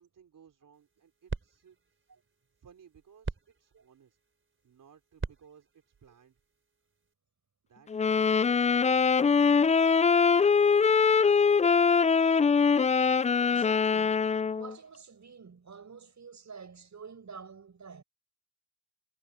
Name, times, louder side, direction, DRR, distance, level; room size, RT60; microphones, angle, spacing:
voice 1, 0.0-2.2 2.6-4.2 4.6-6.4 7.6-9.8, right 7 dB, 80° right, 3.9 m, -60 dB
sound 1, 0.7-7.1, right 3 dB, 40° right, 4.3 m, -44 dB
sound 2, 7.9-14.7, left 5 dB, 25° left, 0.3 m, -23 dB
voice 2, 13.4-14.3 14.5-18.0, right 5 dB, 60° right, 6.4 m, -48 dB
cardioid pair, 60°, 32 cm